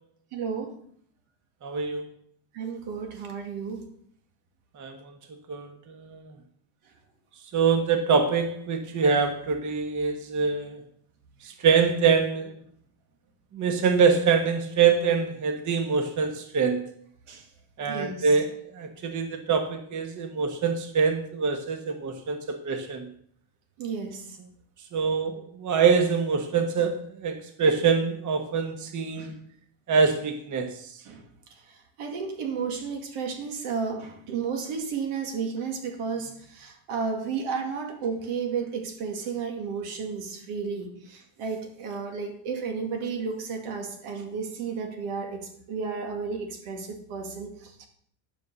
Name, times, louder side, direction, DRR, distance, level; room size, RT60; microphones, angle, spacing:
voice 1, 0.3-0.7 2.5-3.9 17.3-17.4 17.9-18.3 22.7-22.8 23.8-24.4 29.2-29.3 31.1-31.2 32.0-47.9, right 5 dB, 85° right, 2.4 m, -33 dB
voice 2, 1.6-2.0 4.7-5.1 5.5-6.3 7.5-10.8 11.4-12.5 13.5-16.9 17.8-22.4 22.6-23.1 24.9-29.4 29.9-30.9, right 5 dB, 35° right, 1.2 m, -25 dB
11.5 x 5.4 x 6.8 m
cardioid pair, 145°, 50 cm